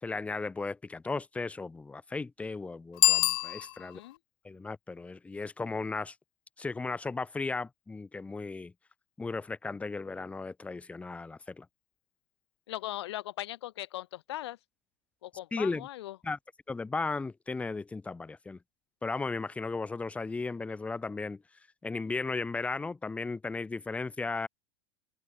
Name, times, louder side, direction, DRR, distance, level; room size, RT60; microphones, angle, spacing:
voice 1, 0.0-4.0 4.4-6.1 6.6-8.7 9.2-11.7 15.5-15.9 16.2-16.4 16.7-18.6 19.0-21.4 21.8-24.5, left 3 dB, 10° left, 2.9 m, -35 dB
Bicycle bell, 2.9-4.2, left 29 dB, 55° left, 1.8 m, -26 dB
voice 2, 3.8-4.2 12.7-14.6 15.2-16.1, left 15 dB, 80° left, 1.7 m, -39 dB
supercardioid pair, 150°, 14 cm